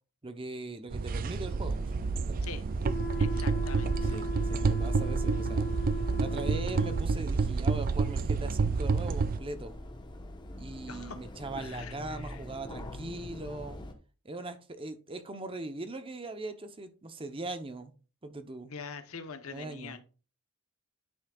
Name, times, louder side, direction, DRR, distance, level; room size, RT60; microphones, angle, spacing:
voice 1, 0.2-2.4 4.1-5.7 5.9-9.8 10.6-13.8 14.2-17.9 18.2-18.7 19.5-20.0, right 2 dB, 25° right, 0.8 m, -40 dB
sound 1, 0.9-9.4, right 4 dB, 40° right, 0.3 m, -29 dB
sound 2, 1.4-13.9, left 1 dB, 20° left, 1.0 m, -45 dB
sound 3, 2.8-7.1, left 1 dB, 40° left, 0.9 m, -38 dB
voice 2, 3.2-4.2 10.9-11.3 11.6-12.4 18.7-20.0, left 5 dB, 70° left, 1.0 m, -44 dB
10.0 x 6.3 x 2.4 m
head